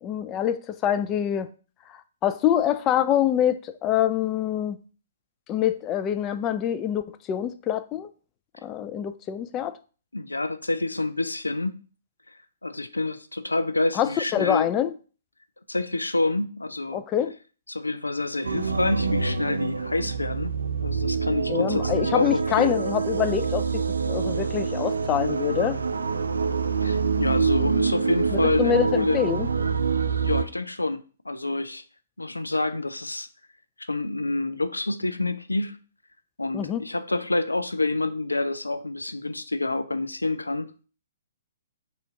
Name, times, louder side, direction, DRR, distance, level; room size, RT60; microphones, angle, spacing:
voice 1, 0.0-1.5 1.9-4.8 5.5-8.1 8.6-9.7 13.9-14.9 16.9-17.3 21.5-25.8 28.3-29.5 36.5-36.8, left 10 dB, 25° left, 0.3 m, -25 dB
voice 2, 10.1-11.8 12.6-14.7 15.7-17.0 17.7-20.5 20.8-22.8 26.8-29.2 30.2-31.8 32.2-33.3 33.9-35.8 36.4-40.9, left 2 dB, 85° left, 0.4 m, -28 dB
sound 1, 18.4-30.4, right 5 dB, 75° right, 0.4 m, -26 dB
4.0 x 2.8 x 4.7 m
figure-of-eight pair, 125°, 0 cm